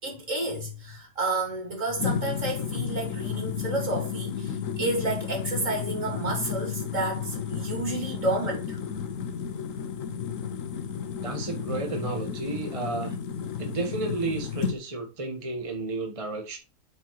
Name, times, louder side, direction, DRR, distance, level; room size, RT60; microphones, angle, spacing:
voice 1, 0.0-8.8, right 2 dB, 55° right, 3.4 m, -30 dB
sound 1, 2.0-14.8, left 7 dB, 60° left, 1.3 m, -32 dB
voice 2, 11.2-13.2 13.6-16.6, right 3 dB, 25° right, 1.2 m, -32 dB
8.0 x 5.2 x 4.7 m
omnidirectional pair, 1.6 m